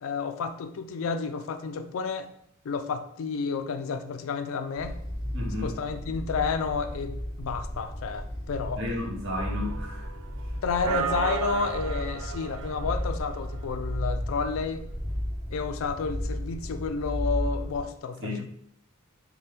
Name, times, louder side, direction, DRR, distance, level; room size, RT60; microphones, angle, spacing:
voice 1, 0.0-2.3 2.6-5.0 5.6-8.8 10.6-14.9 15.5-18.5, left 5 dB, 70° left, 9 dB, 0.3 m, -31 dB
sound 1, 4.8-17.8, equal, 15° right, 1.3 m, -34 dB
voice 2, 5.3-5.7 8.8-10.1 18.2-18.4, left 1 dB, 55° right, -2 dB, 1.0 m, -33 dB
sound 2, 9.5-10.4 10.8-13.6, right 6 dB, 80° right, 0.3 m, -34 dB
4.3 x 2.2 x 3.3 m, 0.71 s
head